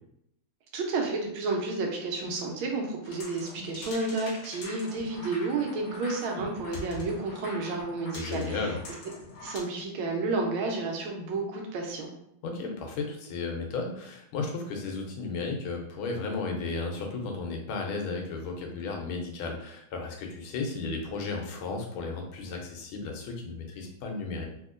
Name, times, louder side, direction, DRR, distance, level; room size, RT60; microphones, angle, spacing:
voice 1, 0.7-8.7 9.4-12.1, right 3 dB, 85° right, 1 dB, 1.5 m, -31 dB
sound 1, 3.0-9.6, left 1 dB, 70° left, 1.4 m, -43 dB
voice 2, 8.1-8.8 12.4-24.5, left 3 dB, 90° left, 2 dB, 1.5 m, -34 dB
3.5 x 2.8 x 2.5 m, 0.75 s
omnidirectional pair, 2.2 m